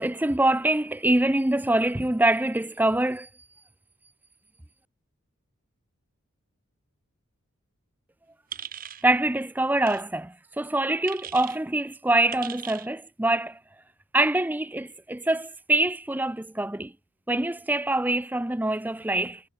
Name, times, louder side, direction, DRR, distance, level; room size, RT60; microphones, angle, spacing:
voice 1, 0.0-3.3 9.0-13.6 14.1-16.9 17.3-19.4, right 2 dB, 10° right, 0.5 m, -25 dB
sound 1, 8.5-9.0 9.8-10.0 11.1-11.6 12.3-12.9, right 9 dB, 40° right, 1.2 m, -38 dB
head